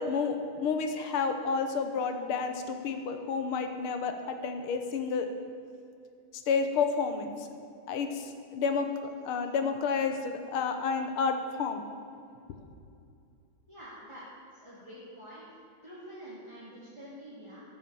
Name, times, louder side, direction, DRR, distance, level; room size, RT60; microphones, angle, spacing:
voice 1, 0.0-5.3 6.3-7.5 7.9-11.8, left 5 dB, 80° left, 6 dB, 1.9 m, -30 dB
voice 2, 13.7-14.2 14.5-15.6 15.8-17.6, equal, 15° right, -10 dB, 2.5 m, -47 dB
13.0 x 7.4 x 7.0 m, 2.4 s
omnidirectional pair, 2.4 m